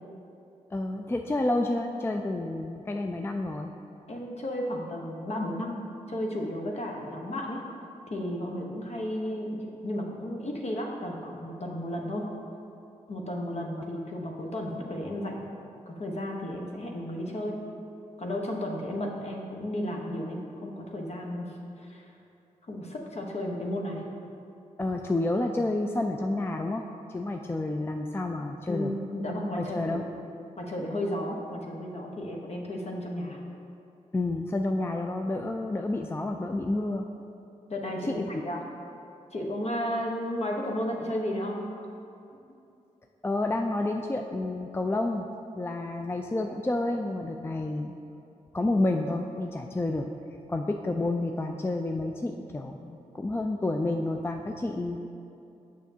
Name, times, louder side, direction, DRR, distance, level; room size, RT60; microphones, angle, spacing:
voice 1, 0.7-3.7 24.8-28.9 29.5-30.0 34.1-37.1 38.0-38.4 43.2-45.3 45.5-48.0 48.5-50.1 50.5-55.0, left 2 dB, 15° left, 4 dB, 0.4 m, -29 dB
voice 2, 4.1-5.7 6.1-7.6 8.1-12.3 13.1-15.4 15.9-17.6 18.2-21.5 21.8-22.1 22.7-24.0 28.2-28.3 28.7-30.0 30.6-33.4 37.7-38.6 39.3-41.6, left 1 dB, 50° left, 0 dB, 1.0 m, -33 dB
6.9 x 6.1 x 2.8 m, 2.7 s
supercardioid pair, 40°, 14 cm